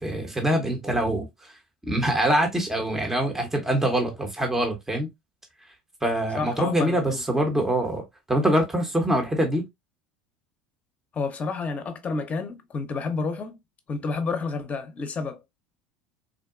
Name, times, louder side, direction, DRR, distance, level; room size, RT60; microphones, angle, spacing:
voice 1, 0.0-1.5 1.9-5.1 6.0-9.6, right 1 dB, 10° right, 0.9 m, -24 dB
voice 2, 6.4-7.2 11.1-13.6 13.9-15.4, left 4 dB, 30° left, 0.8 m, -30 dB
3.7 x 2.2 x 2.4 m
hypercardioid pair, 80°, 5 cm